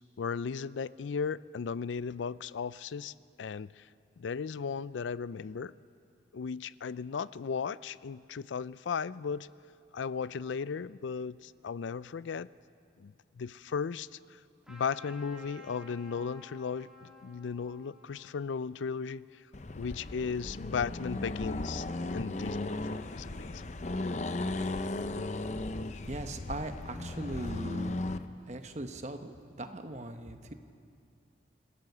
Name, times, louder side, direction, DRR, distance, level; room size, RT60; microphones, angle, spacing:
voice 1, 0.2-3.9 4.2-5.7 6.3-9.5 9.9-12.5 13.0-14.4 14.7-19.4 19.8-21.9 22.1-23.6, left 6 dB, 85° left, 18 dB, 0.4 m, -36 dB
Trumpet, 14.6-19.7, left 1 dB, 5° right, 2.7 m, -54 dB
Accelerating revving vroom, 19.5-28.2, left 2 dB, 40° left, 0.6 m, -36 dB
voice 2, 26.1-28.0 28.5-30.5, right 1 dB, 40° right, 7 dB, 1.0 m, -39 dB
26.5 x 17.0 x 6.8 m, 2.5 s
head